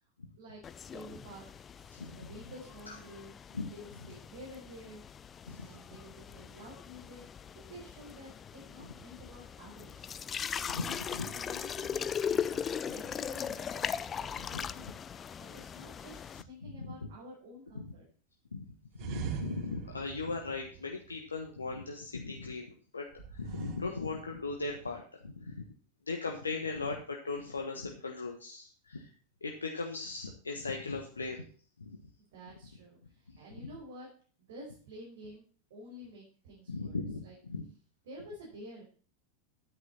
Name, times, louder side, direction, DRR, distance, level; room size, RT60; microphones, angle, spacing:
voice 1, 0.4-3.3 3.7-5.0 5.6-7.2 7.5-10.1 10.6-15.0 15.4-18.0 32.3-34.1 34.5-35.4 35.7-37.3 38.1-38.8, equal, 60° right, -3 dB, 5.2 m, -50 dB
sound 1, 0.6-16.4, left 7 dB, 25° left, 0.5 m, -39 dB
voice 2, 5.5-5.8 8.8-8.9 10.7-10.9 11.1-11.3 14.5-14.6 16.6-17.1 17.7-17.9 18.5-25.6 26.1-29.1 29.4-31.5 31.8-32.0 33.3-33.4 36.7-37.7, left 3 dB, 80° left, 2 dB, 1.4 m, -38 dB
sound 2, 18.9-21.6 23.1-24.8, right 8 dB, 45° right, 1.5 m, -43 dB
10.5 x 9.5 x 4.2 m, 0.41 s
figure-of-eight pair, 85°, 0 cm